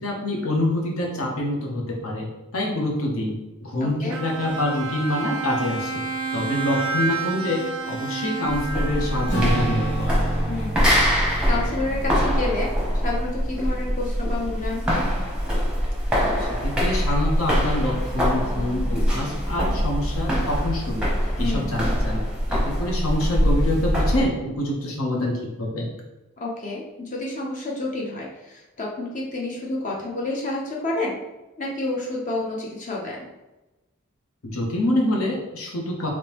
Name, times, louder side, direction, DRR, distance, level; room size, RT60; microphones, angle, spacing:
voice 1, 0.0-2.3 2.5-3.3 3.6-6.0 6.3-10.1 16.4-21.1 21.4-22.2 22.5-25.9 34.4-36.1, left 1 dB, 75° left, -1 dB, 0.9 m, -26 dB
Bowed string instrument, 4.1-10.5, right 4 dB, 65° right, 0.4 m, -30 dB
sound 1, 8.5-24.3, equal, 5° right, 0.8 m, -23 dB
Strum, 9.3-13.9, right 2 dB, 15° left, 1.3 m, -31 dB
voice 2, 10.5-15.0 21.4-21.7 26.4-31.2 31.6-33.3, left 2 dB, 35° left, -2 dB, 0.6 m, -29 dB
3.6 x 3.0 x 2.9 m, 1.0 s
head